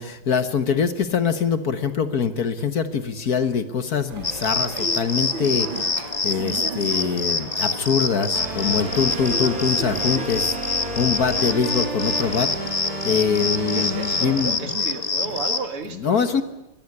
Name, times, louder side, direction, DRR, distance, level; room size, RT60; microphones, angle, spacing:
voice 1, 0.0-12.5 13.0-14.7 16.0-16.4, left 6 dB, 50° left, 11 dB, 1.5 m, -24 dB
sound 1, 4.1-10.3, right 6 dB, 65° right, 2.1 m, -36 dB
sound 2, 4.2-15.6, left 3 dB, 25° left, 1.0 m, -26 dB
sound 3, 8.3-14.6, right 2 dB, 45° right, 4.3 m, -32 dB
voice 2, 13.7-16.3, right 5 dB, 85° right, 8 dB, 3.0 m, -33 dB
23.0 x 18.5 x 9.8 m, 0.94 s
omnidirectional pair, 2.4 m